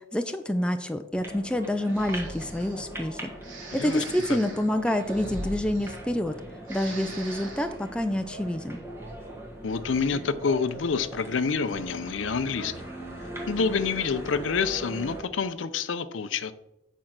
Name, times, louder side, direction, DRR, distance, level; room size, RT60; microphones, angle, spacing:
voice 1, 0.1-3.3 3.7-6.3 6.7-8.8, left 1 dB, 5° left, 7 dB, 0.4 m, -27 dB
sound 1, 1.1-15.2, right 1 dB, 15° right, 1.4 m, -40 dB
Breathing, 1.8-2.9 3.4-6.3 6.6-7.8, right 1 dB, 85° right, 2.6 m, -41 dB
voice 2, 3.7-4.4 9.6-12.7 13.5-16.5, left 5 dB, 80° left, 13 dB, 0.5 m, -28 dB
8.7 x 4.5 x 6.0 m, 0.89 s
head